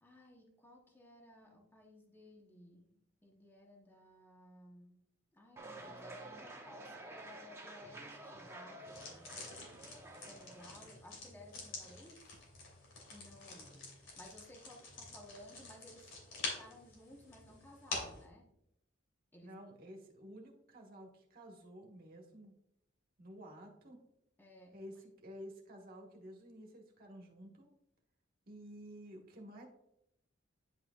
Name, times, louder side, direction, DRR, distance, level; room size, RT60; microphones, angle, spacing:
voice 1, 0.0-5.0 5.3-9.3 10.2-12.2 13.1-18.5 19.3-19.6 24.4-24.8, left 1 dB, 10° left, -1 dB, 1.0 m, -57 dB
sound 1, 5.6-10.9, right 2 dB, 15° right, 0.9 m, -50 dB
sound 2, 8.9-18.2, left 3 dB, 80° left, 2.8 m, -47 dB
voice 2, 19.4-22.5 23.2-24.0 24.7-27.7 28.5-29.7, equal, 50° right, 1 dB, 1.4 m, -52 dB
9.9 x 5.8 x 2.3 m, 0.80 s
head